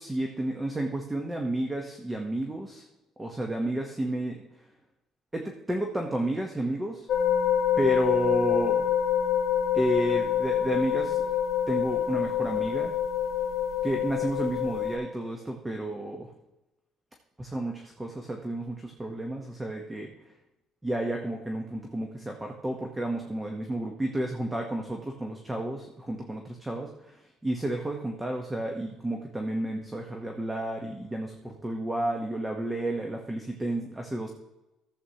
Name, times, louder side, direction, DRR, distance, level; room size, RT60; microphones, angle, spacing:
voice 1, 0.0-2.8 3.2-4.4 5.3-7.1 7.8-8.9 9.7-11.2 11.7-12.9 13.8-16.3 17.4-20.1 20.8-34.3, right 1 dB, 10° right, 2 dB, 0.9 m, -31 dB
sound 1, 7.1-15.0, left 9 dB, 55° left, 1.9 m, -26 dB
14.5 x 7.6 x 2.8 m, 0.97 s
cardioid pair, 140°, 0 cm